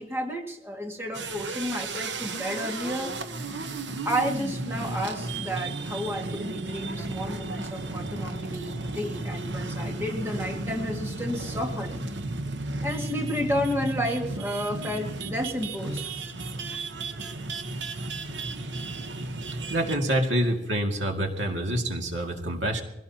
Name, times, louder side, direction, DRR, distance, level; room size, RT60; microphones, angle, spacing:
voice 1, 0.0-3.1 4.1-12.0 12.8-16.0, equal, 15° right, 1 dB, 2.0 m, -31 dB
sound 1, 1.1-20.1, right 2 dB, 70° right, 1.1 m, -34 dB
voice 2, 19.7-22.8, right 1 dB, 90° right, 2 dB, 2.3 m, -26 dB
23.5 x 17.0 x 2.9 m, 0.92 s
head